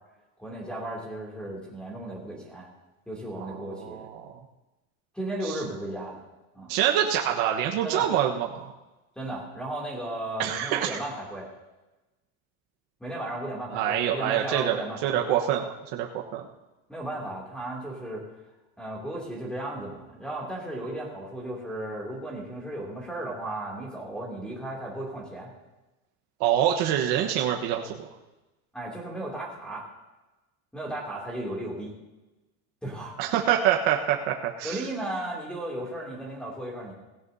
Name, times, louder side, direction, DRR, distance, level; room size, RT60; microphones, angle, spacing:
voice 1, 0.4-2.7 3.1-4.1 5.1-6.2 6.5-6.7 7.8-8.1 9.2-11.5 13.0-15.3 16.9-18.2 18.8-25.5 28.7-29.9 30.7-31.9 32.8-33.1 34.6-36.9, right 1 dB, ahead, -6 dB, 2.6 m, -35 dB
voice 2, 3.4-4.3 5.4-5.6 6.7-8.7 10.4-11.0 13.7-16.4 26.4-28.1 33.2-34.9, right 10 dB, 65° right, 1 dB, 1.3 m, -26 dB
17.5 x 17.0 x 2.7 m, 1.1 s
cardioid pair, 160°, 43 cm